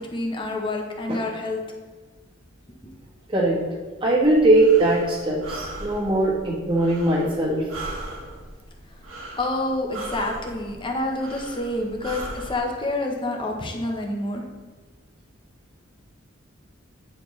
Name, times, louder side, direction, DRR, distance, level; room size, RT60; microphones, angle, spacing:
voice 1, 0.0-1.6 2.8-2.9 8.9-9.0 9.4-14.4, left 2 dB, 25° left, 2 dB, 0.8 m, -28 dB
voice 2, 4.0-7.6, right 2 dB, 25° right, -5 dB, 1.5 m, -20 dB
Breathing, 4.2-12.6, right 2 dB, 90° right, 1.3 m, -38 dB
9.1 x 4.4 x 3.2 m, 1.3 s
head